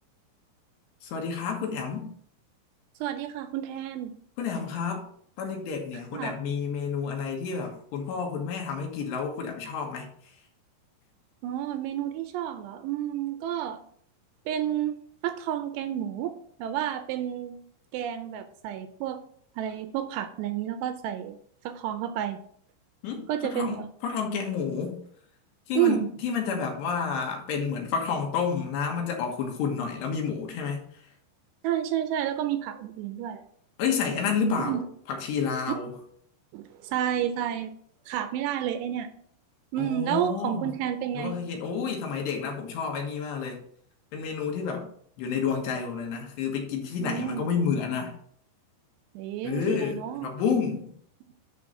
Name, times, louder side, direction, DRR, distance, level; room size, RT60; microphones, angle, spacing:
voice 1, 1.0-2.1 4.4-5.1 5.4-10.1 23.0-25.0 25.7-30.9 33.8-34.8 35.1-35.9 39.8-40.6 41.1-43.6 44.1-44.9 45.2-48.1 49.4-50.9, left 6 dB, 75° left, 1 dB, 3.4 m, -30 dB
voice 2, 3.0-4.1 6.1-6.3 11.4-13.8 14.5-15.0 15.2-16.3 16.6-17.6 17.9-19.2 19.6-21.4 21.7-22.4 23.3-23.9 25.8-26.1 31.6-33.4 34.7-34.8 36.5-37.7 38.1-39.1 39.7-41.4 47.0-47.4 49.2-50.3, right 11 dB, 80° right, 9 dB, 2.6 m, -30 dB
10.5 x 3.7 x 5.4 m, 0.63 s
omnidirectional pair, 5.2 m